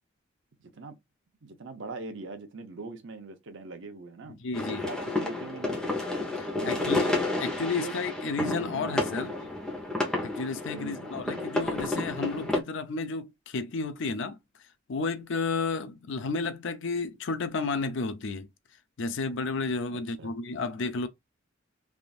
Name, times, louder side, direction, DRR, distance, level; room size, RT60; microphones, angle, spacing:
voice 1, 0.6-1.0 1.4-4.4 4.7-6.0 6.6-7.2 7.8-7.9 8.6-9.0 10.7-11.1 19.9-20.3, right 3 dB, 65° right, 0.7 m, -42 dB
voice 2, 4.3-4.8 6.3-7.1 7.4-9.3 10.2-14.4 14.9-18.5 19.0-21.1, left 4 dB, 65° left, 0.5 m, -32 dB
sound 1, 4.5-12.6, left 2 dB, 5° left, 0.9 m, -31 dB
3.5 x 2.6 x 2.4 m
head